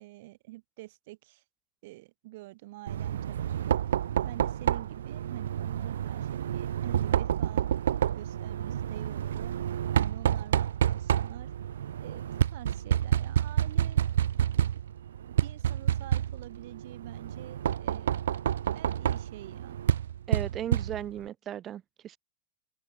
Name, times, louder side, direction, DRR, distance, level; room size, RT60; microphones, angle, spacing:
voice 1, 0.0-1.4 1.8-4.0 4.2-7.7 8.1-11.5 12.0-14.1 15.2-18.1 18.7-19.8, right 19 dB, 60° right, 4.2 m, -47 dB
Knock, 2.9-21.3, right 10 dB, 85° right, 0.6 m, -29 dB
voice 2, 20.3-22.2, right 10 dB, 30° right, 6.5 m, -36 dB
open air
hypercardioid pair, 125°, 0 cm